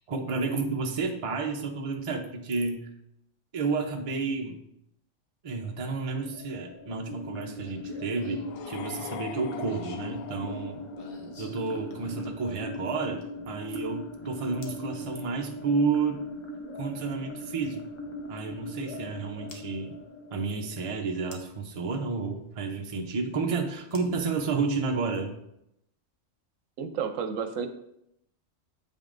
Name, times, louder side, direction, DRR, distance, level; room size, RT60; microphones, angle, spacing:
voice 1, 0.1-2.9 3.5-4.6 5.4-10.8 11.4-16.2 16.8-17.9 18.3-20.0 20.3-25.3, right 4 dB, 35° right, 2 dB, 0.6 m, -31 dB
sound 1, 6.2-21.2, left 1 dB, 35° left, 0.5 m, -40 dB
sound 2, 7.5-13.5 14.6-14.9 16.8-16.9 19.5-19.7 21.3-21.7 23.9-24.9, left 1 dB, 50° left, 1.0 m, -50 dB
sound 3, 8.4-11.4, left 9 dB, 85° left, 1.0 m, -43 dB
voice 2, 26.8-27.7, right 6 dB, 80° right, 8 dB, 1.0 m, -31 dB
7.9 x 5.3 x 2.5 m, 0.79 s
omnidirectional pair, 1.3 m